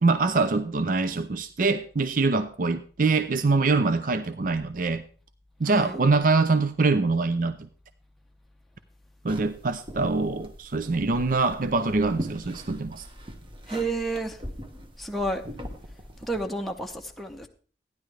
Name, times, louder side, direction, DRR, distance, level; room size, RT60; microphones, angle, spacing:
voice 1, 0.0-5.0 5.6-7.7 9.2-13.1, right 3 dB, 50° right, 0.5 m, -24 dB
voice 2, 5.6-6.0 13.7-14.4 15.0-15.4 16.2-17.5, right 2 dB, ahead, 0.7 m, -30 dB
sound 1, 9.3-16.5, equal, 30° right, 1.2 m, -41 dB
14.5 x 10.5 x 3.3 m
head